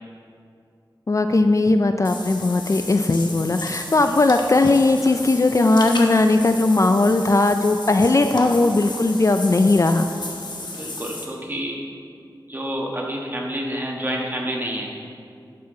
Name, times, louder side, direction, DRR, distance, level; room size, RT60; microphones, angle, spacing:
voice 1, 1.1-10.1, left 2 dB, 40° left, 7 dB, 0.3 m, -18 dB
Water / Bathtub (filling or washing), 2.0-11.2, left 2 dB, 65° left, 1.0 m, -34 dB
voice 2, 10.6-11.8 12.5-14.9, equal, 25° right, -2 dB, 1.4 m, -28 dB
11.5 x 5.6 x 3.8 m, 2.4 s
wide cardioid pair, 65°, 8 cm